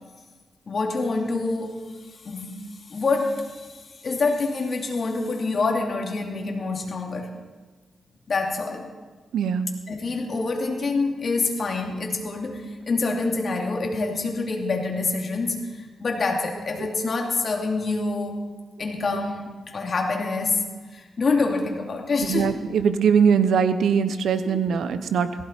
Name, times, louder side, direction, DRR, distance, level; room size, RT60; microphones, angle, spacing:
voice 1, 0.7-1.8 2.1-7.3 8.3-8.9 9.9-18.4 18.8-20.6 20.9-22.6 24.4-24.6, left 3 dB, 50° left, 2 dB, 2.6 m, -26 dB
voice 2, 9.3-9.7 22.3-25.3, right 6 dB, 85° right, 11 dB, 0.9 m, -21 dB
18.0 x 15.5 x 4.5 m, 1.4 s
cardioid pair, 90°, 0 cm